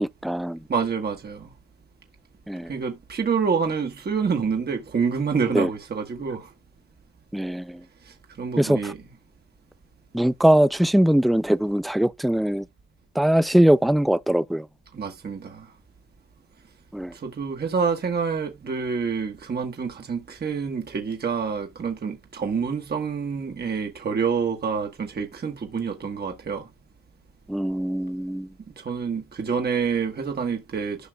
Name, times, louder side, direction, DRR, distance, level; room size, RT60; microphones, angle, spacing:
voice 1, 0.0-0.6 2.5-2.7 5.5-5.7 7.3-7.8 8.6-8.9 10.1-12.7 13.2-14.7 16.9-17.1 27.5-28.5, right 1 dB, ahead, 0.3 m, -21 dB
voice 2, 0.7-1.5 2.7-6.5 8.0-9.0 14.9-15.7 17.1-26.7 28.7-31.1, right 6 dB, 30° right, 1.3 m, -27 dB
11.5 x 5.7 x 2.3 m
cardioid pair, 90°, 30 cm